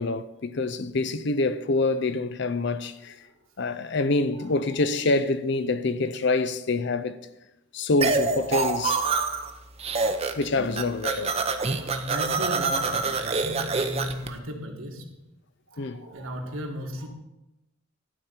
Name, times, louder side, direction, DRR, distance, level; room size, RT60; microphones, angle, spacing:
voice 1, 0.0-3.2 3.6-7.2 7.7-9.1 10.0-11.3 15.8-16.1, left 3 dB, 55° left, 0.5 m, -26 dB
sound 1, 8.0-9.5 9.8-10.5 10.7-14.3, right 4 dB, 30° right, 0.7 m, -26 dB
voice 2, 8.8-9.5 9.8-10.0 10.6-10.7 11.4-15.2 15.7-17.1, equal, 70° right, 1.7 m, -36 dB
12.5 x 4.4 x 8.0 m
head